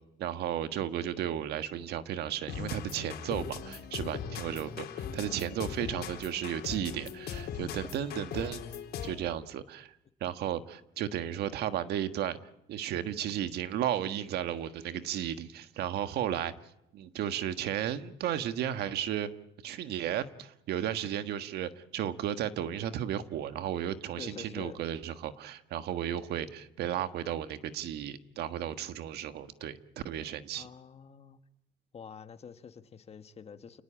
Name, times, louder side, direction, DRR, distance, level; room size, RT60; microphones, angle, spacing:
voice 1, 0.2-8.6 9.0-9.9 10.2-12.4 12.7-16.5 16.9-19.3 19.6-30.7, right 10 dB, 75° right, 10 dB, 1.5 m, -34 dB
sound 1, 2.5-9.3, left 7 dB, 70° left, 4.0 m, -39 dB
voice 2, 24.2-24.8 30.5-31.4 31.9-33.8, left 6 dB, 40° left, 9 dB, 1.6 m, -47 dB
29.0 x 19.0 x 8.8 m, 0.85 s
cardioid pair, 110°, 17 cm